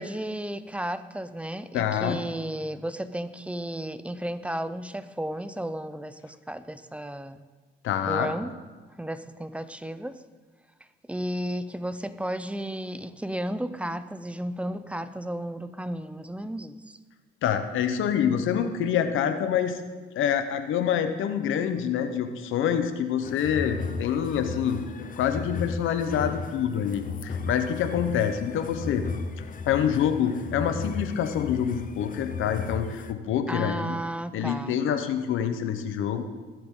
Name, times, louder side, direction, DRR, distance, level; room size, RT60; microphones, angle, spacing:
voice 1, 0.0-7.4 8.0-8.5 9.0-10.2 11.1-17.0 33.5-34.8, right 1 dB, 5° right, 12 dB, 0.6 m, -33 dB
voice 2, 1.7-2.2 7.8-8.3 17.4-19.8 20.2-24.8 25.2-29.0 29.7-33.9 34.3-36.2, left 8 dB, 85° left, 9 dB, 1.0 m, -26 dB
sound 1, 23.2-33.1, left 4 dB, 45° left, 0.8 m, -35 dB
20.0 x 7.8 x 3.9 m, 1.4 s
cardioid pair, 90°, 20 cm